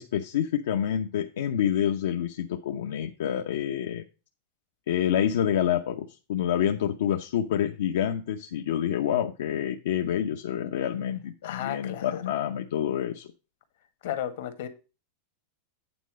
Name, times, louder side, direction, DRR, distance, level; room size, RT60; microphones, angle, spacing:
voice 1, 0.0-4.0 4.9-13.3, left 9 dB, 80° left, 0.8 m, -27 dB
voice 2, 11.4-12.2 14.0-14.7, left 11 dB, 65° left, 1.6 m, -33 dB
9.0 x 4.1 x 6.2 m
supercardioid pair, 160°, 0 cm